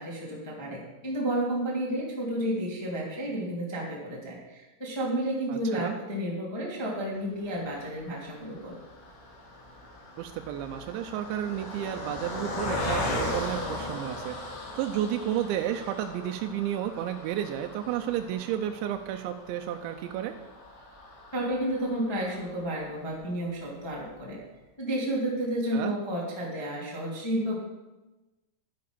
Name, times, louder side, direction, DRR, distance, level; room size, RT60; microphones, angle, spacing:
voice 1, 0.0-8.8 21.3-24.4 24.8-27.6, right 1 dB, 30° left, -4 dB, 0.4 m, -31 dB
voice 2, 5.5-6.0 10.2-20.4 25.7-26.0, right 11 dB, 80° right, 5 dB, 2.7 m, -32 dB
Car passing by, 7.5-23.0 23.5-23.6 23.8-24.0, left 1 dB, 85° left, 5.1 m, -38 dB
11.5 x 10.5 x 5.2 m, 1.1 s
omnidirectional pair, 5.7 m